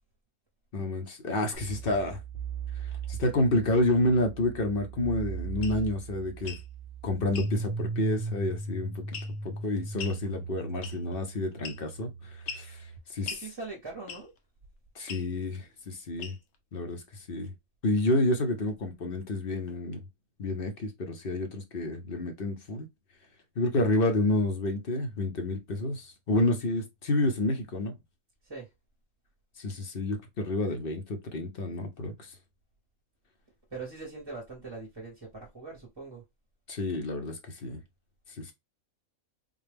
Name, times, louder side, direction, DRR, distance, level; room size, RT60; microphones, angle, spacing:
voice 1, 0.7-2.2 3.1-6.6 7.0-9.0 9.4-13.3 14.9-16.3 16.7-17.5 17.8-20.0 20.4-22.9 23.6-27.9 29.6-32.4 36.7-37.8 38.4-38.5, left 2 dB, 50° left, 0.8 m, -29 dB
sound 1, 1.5-13.0, right 4 dB, 10° left, 0.4 m, -38 dB
sound 2, 5.6-5.8 6.4-6.7 7.3-7.5 9.1-9.5 10.0-10.2 10.8-11.2 11.6-12.0 12.5-12.7 13.3-13.5 14.1-14.4 15.1-15.3 16.2-16.6, left 6 dB, 65° left, 1.1 m, -40 dB
voice 2, 13.3-14.3 28.4-28.7 33.7-36.2, right 3 dB, 20° right, 0.8 m, -41 dB
3.8 x 2.3 x 3.3 m
omnidirectional pair, 1.5 m